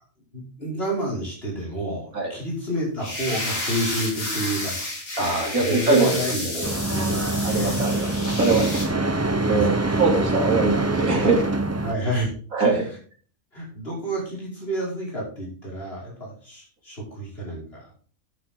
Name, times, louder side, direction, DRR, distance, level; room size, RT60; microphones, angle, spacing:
voice 1, 0.3-4.9 5.2-7.9 9.5-10.0 11.8-12.3 13.5-17.9, right 1 dB, 40° left, -4 dB, 5.6 m, -30 dB
sound 1, 3.0-8.9, left 1 dB, 65° left, 3.9 m, -31 dB
voice 2, 5.2-6.7 7.4-11.5 11.8-11.9 12.5-12.9, right 3 dB, 70° right, 0 dB, 3.5 m, -23 dB
sound 2, 6.6-11.9, right 2 dB, 20° right, 0.4 m, -24 dB
11.0 x 9.2 x 3.7 m, 0.41 s
omnidirectional pair, 1.5 m